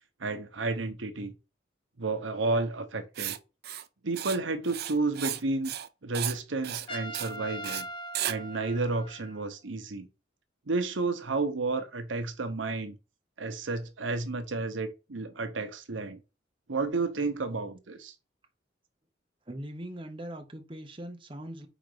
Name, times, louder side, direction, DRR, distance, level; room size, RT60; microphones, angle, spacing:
voice 1, 0.2-1.3 2.0-3.4 4.0-5.7 6.0-7.9 8.3-10.1 10.7-13.0 13.4-16.2 16.7-18.1, right 3 dB, 85° right, 0.9 m, -31 dB
Writing, 3.1-3.4 3.6-3.8 4.1-4.4 4.6-5.4 5.6-5.9 6.1-6.4 6.6-6.9 7.1-7.3 7.6-7.8 8.1-8.3, right 12 dB, 55° right, 0.5 m, -34 dB
Trumpet, 6.9-9.6, right 1 dB, 30° left, 0.8 m, -41 dB
voice 2, 19.5-21.7, right 1 dB, 25° right, 1.0 m, -41 dB
5.0 x 3.9 x 4.9 m
head